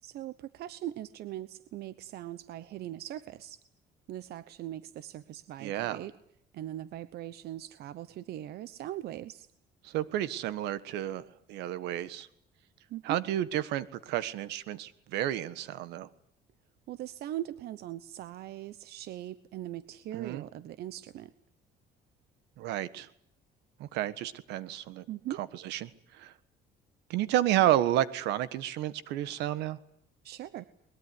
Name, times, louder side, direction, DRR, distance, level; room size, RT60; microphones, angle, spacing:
voice 1, 0.0-3.6 4.1-6.1 6.5-9.5 12.9-13.2 16.9-21.3 25.1-25.4 30.2-30.6, right 13 dB, 70° right, 15 dB, 1.0 m, -40 dB
voice 2, 5.6-6.0 9.8-12.3 13.0-16.1 20.1-20.4 22.6-23.1 23.8-25.0 25.6-26.3 27.1-29.8, right 13 dB, 85° right, 15 dB, 1.5 m, -31 dB
22.0 x 21.5 x 9.7 m, 0.71 s
cardioid pair, 110°, 17 cm